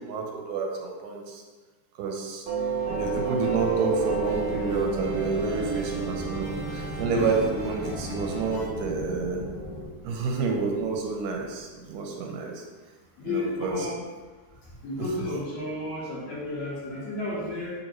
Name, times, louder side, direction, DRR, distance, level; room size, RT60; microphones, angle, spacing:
voice 1, 0.0-1.4 2.0-2.4 2.9-9.4 10.0-12.5 13.3-13.9, right 4 dB, 80° right, 0 dB, 2.1 m, -29 dB
sound 1, 2.5-8.7, equal, 50° left, 1.7 m, -41 dB
Doorbell, 2.5-11.3, right 5 dB, 55° right, 1.5 m, -33 dB
sound 2, 3.8-9.9, right 2 dB, 90° left, 2.6 m, -37 dB
voice 2, 7.1-7.5 13.2-14.0 14.8-17.7, left 2 dB, 70° left, -6 dB, 2.0 m, -32 dB
6.7 x 2.6 x 3.0 m, 1.4 s
omnidirectional pair, 3.7 m